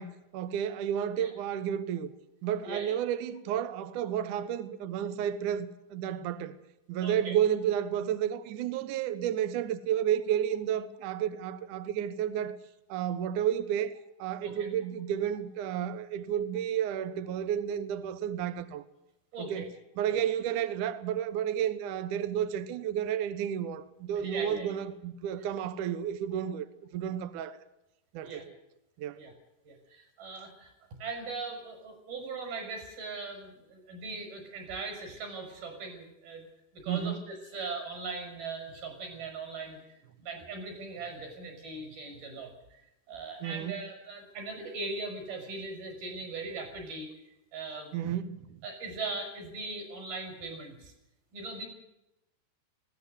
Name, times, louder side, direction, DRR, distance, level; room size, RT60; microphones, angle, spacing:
voice 1, 0.0-2.1 2.4-6.6 6.9-12.6 12.9-13.9 14.2-18.8 19.4-19.7 20.0-26.6 26.9-27.6 28.1-28.4 29.0-29.2 36.9-37.2 43.4-43.8 47.9-48.5, right 9 dB, 75° right, 1.9 m, -31 dB
voice 2, 2.6-3.0 7.0-7.4 14.4-14.5 19.3-19.7 20.1-20.2 24.1-24.8 28.2-28.4 29.1-29.3 29.7-30.7 31.0-36.5 36.7-39.8 40.2-42.8 43.1-47.1 47.5-48.0 48.6-50.9 51.3-51.7, right 3 dB, 55° right, 7.5 m, -39 dB
20.0 x 16.5 x 8.0 m
omnidirectional pair, 5.0 m